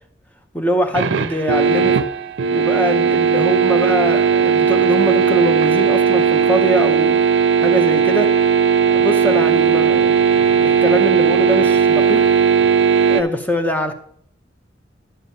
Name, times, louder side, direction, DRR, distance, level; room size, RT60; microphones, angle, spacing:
voice 1, 0.5-2.0 2.5-7.2 7.6-8.3 8.9-10.2 10.6-12.2 13.1-13.9, equal, 10° left, 6 dB, 0.7 m, -22 dB
sound 1, 0.9-13.2, right 6 dB, 80° right, 0.5 m, -16 dB
11.0 x 9.1 x 2.8 m, 0.63 s
head